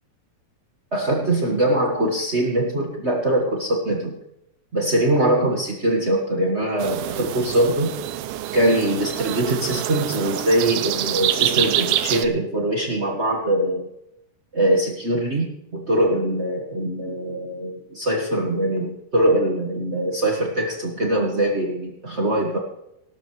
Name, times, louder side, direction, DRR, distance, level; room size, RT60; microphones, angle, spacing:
voice 1, 0.9-4.1 4.7-7.9 8.5-13.8 14.5-22.6, right 1 dB, 50° right, 0 dB, 0.7 m, -22 dB
sound 1, 6.8-12.3, right 12 dB, 85° right, 2.5 m, -26 dB
18.5 x 12.5 x 3.2 m, 0.81 s
omnidirectional pair, 4.2 m